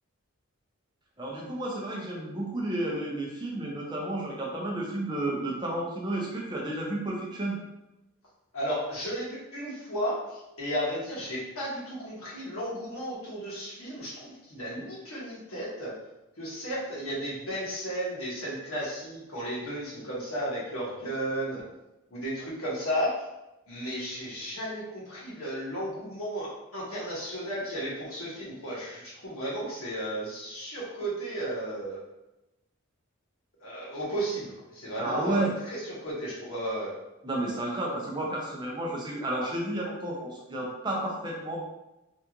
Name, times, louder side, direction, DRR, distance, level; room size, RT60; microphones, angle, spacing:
voice 1, 1.2-7.6 35.0-35.5 37.2-41.6, right 1 dB, 20° right, -3 dB, 0.5 m, -31 dB
voice 2, 8.5-15.9 16.4-21.6 22.1-23.1 23.7-32.0 33.6-36.9, equal, 80° left, -7 dB, 1.4 m, -34 dB
3.4 x 2.5 x 2.9 m, 0.94 s
head